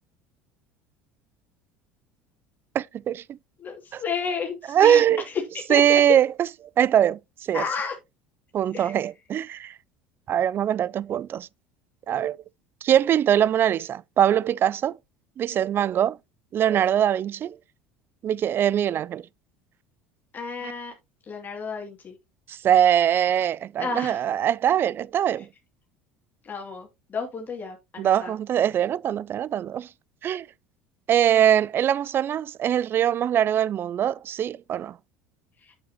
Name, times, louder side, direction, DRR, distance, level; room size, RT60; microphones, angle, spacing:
voice 1, 2.7-3.4 3.9-4.0 4.7-5.2 5.7-6.3 6.8-7.6 8.5-9.8 10.3-11.5 12.1-12.4 12.8-15.0 15.4-16.2 16.5-17.6 18.2-19.3 22.5-25.5 28.0-29.9 30.2-30.5 31.1-35.0, right 10 dB, 40° right, 0.3 m, -22 dB
voice 2, 3.6-6.0 7.5-7.9 8.7-9.0 20.3-20.9 21.3-22.2 23.8-24.2 25.4-25.5 26.4-28.3 35.6-35.7, left 5 dB, 35° left, 2.5 m, -32 dB
8.5 x 7.8 x 2.9 m
hypercardioid pair, 75°, 6 cm